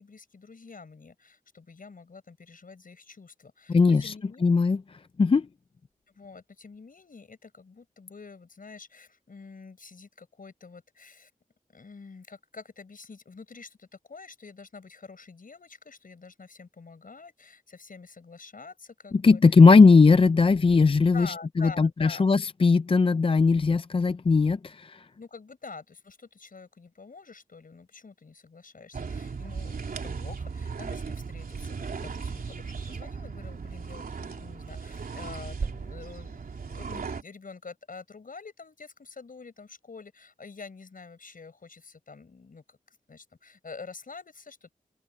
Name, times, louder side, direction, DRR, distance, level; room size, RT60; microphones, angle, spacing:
voice 1, 0.0-4.5 6.1-11.3 11.7-19.9 21.1-22.3 25.2-44.7, left 4 dB, 70° left, 6.8 m, -47 dB
voice 2, 3.7-4.1 4.4-4.8 5.2-5.5 19.2-25.1, left 4 dB, 40° left, 0.5 m, -19 dB
sound 1, 28.9-37.2, right 5 dB, 80° right, 3.4 m, -36 dB
open air
cardioid pair, 55°, 15 cm